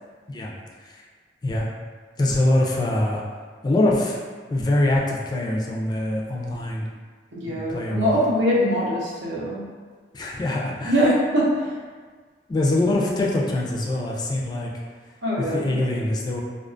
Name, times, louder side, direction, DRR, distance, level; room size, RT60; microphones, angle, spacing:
voice 1, 2.2-3.2 3.6-4.2 4.5-6.9 7.5-8.2 10.1-11.1 12.5-14.7 15.4-16.4, left 1 dB, 25° left, -2 dB, 0.3 m, -24 dB
voice 2, 7.3-9.6 10.8-11.7 15.2-15.8, equal, 75° right, -5 dB, 0.7 m, -22 dB
2.4 x 2.2 x 2.4 m, 1.5 s
head